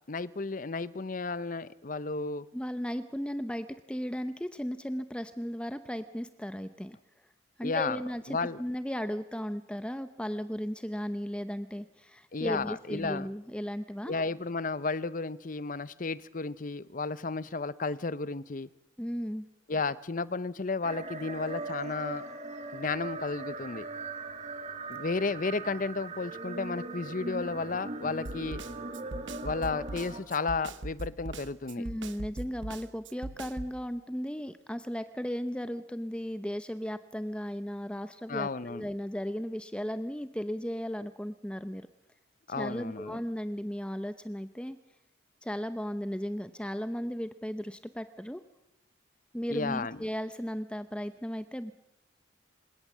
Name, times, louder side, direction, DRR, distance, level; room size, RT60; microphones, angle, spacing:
voice 1, 0.1-2.5 7.6-8.0 8.3-8.6 12.3-13.3 14.1-18.7 19.7-22.2 22.7-23.9 24.9-28.6 29.4-31.8 38.3-38.8 42.5-43.2 49.5-50.0, left 4 dB, 45° left, 17 dB, 0.7 m, -33 dB
voice 2, 2.5-7.0 7.6-14.1 19.0-19.5 31.8-41.9 42.5-44.8 45.4-48.4 49.3-51.7, equal, 5° left, 11 dB, 0.7 m, -36 dB
sound 1, 20.8-30.2, right 3 dB, 35° right, 2.1 m, -40 dB
Snare drum, 28.2-33.8, right 2 dB, 75° right, 1.2 m, -40 dB
28.5 x 17.5 x 7.4 m, 0.91 s
head